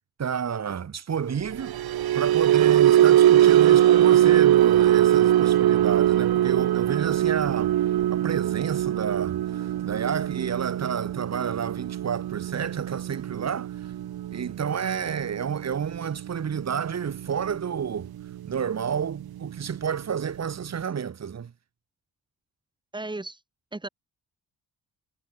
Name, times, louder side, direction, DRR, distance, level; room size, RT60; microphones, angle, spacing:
voice 1, 0.2-7.7 8.1-13.7 14.3-18.1 18.4-21.5, right 7 dB, 45° right, 3.5 m, -30 dB
sound 1, 1.5-17.9 18.2-18.5 18.9-19.1, right 12 dB, 80° right, 1.4 m, -22 dB
voice 2, 22.9-23.4 23.7-23.9, right 2 dB, 10° right, 5.4 m, -34 dB
wide cardioid pair, 165°, 36 cm